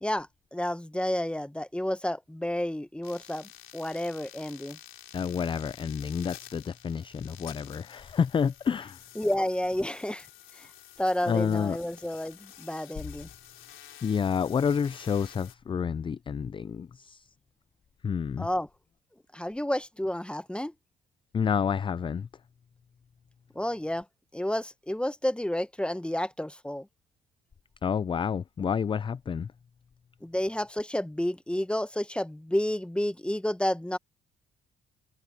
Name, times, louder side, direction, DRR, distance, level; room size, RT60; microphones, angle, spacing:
voice 1, 0.0-4.8 9.2-10.3 10.6-10.7 11.0-13.3 18.4-18.7 19.3-20.7 23.5-24.0 24.3-26.9 30.2-34.0, left 1 dB, 5° left, 0.9 m, -30 dB
sound 1, 3.0-15.5, left 11 dB, 75° left, 3.8 m, -50 dB
voice 2, 5.1-9.0 11.3-11.8 14.0-17.3 18.0-18.5 21.3-22.3 27.8-29.5, left 7 dB, 25° left, 0.3 m, -29 dB
cardioid pair, 90°, 20 cm